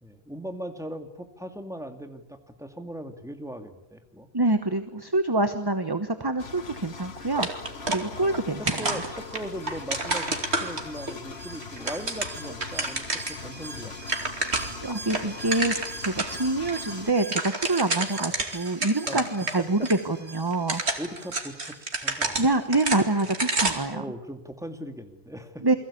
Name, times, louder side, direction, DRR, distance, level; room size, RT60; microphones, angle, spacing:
voice 1, 0.0-4.3 8.0-14.3 18.1-18.3 19.1-19.4 19.8-19.9 21.0-22.5 23.9-25.7, equal, 5° right, 6 dB, 2.3 m, -39 dB
voice 2, 4.3-7.5 7.8-9.0 14.8-20.8 22.4-24.0 25.6-25.8, right 2 dB, 20° right, 9 dB, 1.2 m, -26 dB
Engine, 6.4-17.1, left 5 dB, 75° left, 1.6 m, -41 dB
sound 1, 7.4-8.4 8.7-11.1 11.6-13.4 13.7-13.8 14.0-14.8 15.1-16.3 16.7-16.8 17.1-19.6 19.8-19.9 20.5-23.9, right 2 dB, 85° right, 2.9 m, -29 dB
Alarm, 9.2-22.7 23.0-23.1, right 3 dB, 70° right, 3.2 m, -44 dB
29.0 x 21.5 x 8.5 m, 0.85 s
omnidirectional pair, 1.1 m